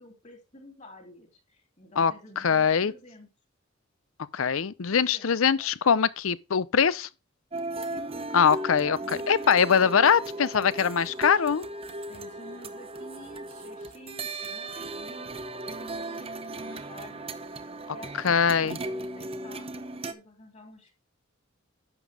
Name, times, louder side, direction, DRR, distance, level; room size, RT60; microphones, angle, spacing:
voice 1, 0.0-3.3 4.9-5.7 7.9-8.4 9.0-10.2 12.1-17.5 17.9-20.9, left 1 dB, 35° left, 3.0 m, -50 dB
voice 2, 2.0-2.9 4.3-7.1 8.3-11.7 18.2-18.8, left 6 dB, 90° left, 0.6 m, -23 dB
sound 1, 7.5-20.1, right 2 dB, 30° right, 0.8 m, -37 dB
11.0 x 7.3 x 3.5 m
head